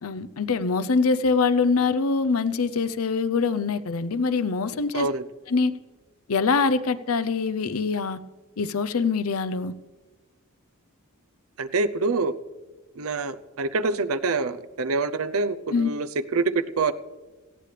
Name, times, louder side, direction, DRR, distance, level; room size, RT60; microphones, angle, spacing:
voice 1, 0.0-5.1 5.5-5.8 6.3-8.2 8.6-9.7 15.7-15.9, left 4 dB, 80° left, 13 dB, 0.7 m, -24 dB
voice 2, 11.6-12.4 13.0-16.9, right 3 dB, 75° right, 11 dB, 0.7 m, -26 dB
18.5 x 15.0 x 3.4 m, 1.3 s
head